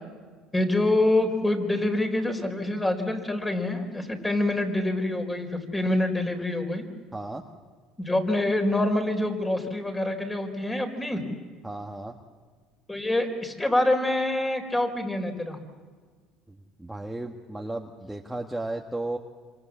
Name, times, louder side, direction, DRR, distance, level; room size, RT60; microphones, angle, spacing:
voice 1, 0.5-6.8 8.0-11.2 12.9-15.6, left 1 dB, 15° left, 4 dB, 4.7 m, -26 dB
voice 2, 7.1-7.4 11.6-12.2 16.8-19.2, right 2 dB, 5° right, 1 dB, 1.7 m, -34 dB
27.0 x 26.0 x 7.5 m, 1.5 s
supercardioid pair, 105°, 0 cm